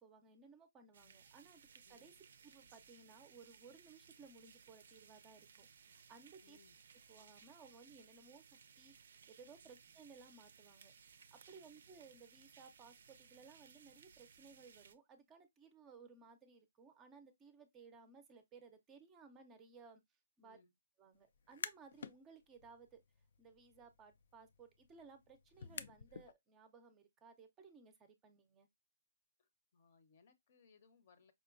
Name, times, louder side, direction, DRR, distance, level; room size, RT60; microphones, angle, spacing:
voice 1, 0.0-2.1 2.4-6.6 7.1-20.0 20.4-20.6 21.0-23.0 23.4-28.7, right 5 dB, 15° right, 0.5 m, -60 dB
sound 1, 0.9-14.9, right 6 dB, 65° right, 0.4 m, -63 dB
voice 2, 6.4-6.8 9.6-9.8 11.5-11.6 20.4-20.7 29.4-31.3, left 5 dB, 50° left, 0.7 m, -69 dB
sound 2, 21.3-22.2 22.6-26.3, left 7 dB, 65° left, 0.3 m, -51 dB
4.9 x 2.2 x 2.4 m
hypercardioid pair, 155°, 0 cm